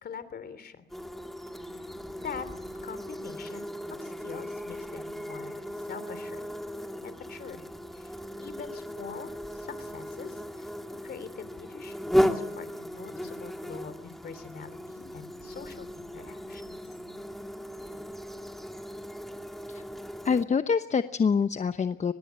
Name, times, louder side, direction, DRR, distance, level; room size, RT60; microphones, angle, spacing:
voice 1, 0.0-0.9 1.5-2.0 2.2-2.5 2.8-6.5 7.0-7.7 7.9-12.0 12.2-16.8, left 6 dB, 55° left, 13 dB, 3.3 m, -44 dB
sound 1, 0.9-20.4, equal, ahead, 2.3 m, -36 dB
voice 2, 20.2-22.1, left 6 dB, 35° left, 10 dB, 0.9 m, -26 dB
23.0 x 21.0 x 8.2 m, 0.95 s
cardioid pair, 90°, 20 cm